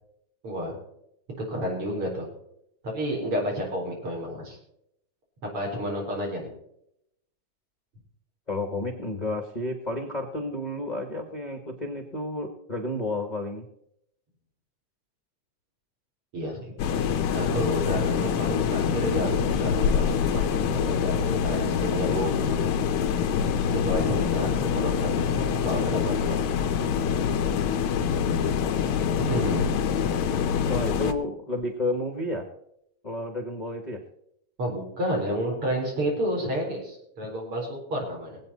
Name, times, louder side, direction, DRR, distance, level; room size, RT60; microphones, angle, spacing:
voice 1, 0.4-0.7 1.5-2.3 2.8-4.6 5.5-6.5 16.3-16.7 17.3-22.7 23.7-26.4 29.2-29.8 34.6-38.4, equal, 45° right, -1 dB, 4.9 m, -30 dB
voice 2, 8.5-13.6 30.7-32.4 33.0-34.0, left 2 dB, 35° left, 4 dB, 0.7 m, -31 dB
sound 1, 16.8-31.1, left 7 dB, 75° left, 2.2 m, -25 dB
21.0 x 8.6 x 4.1 m, 0.76 s
omnidirectional pair, 3.4 m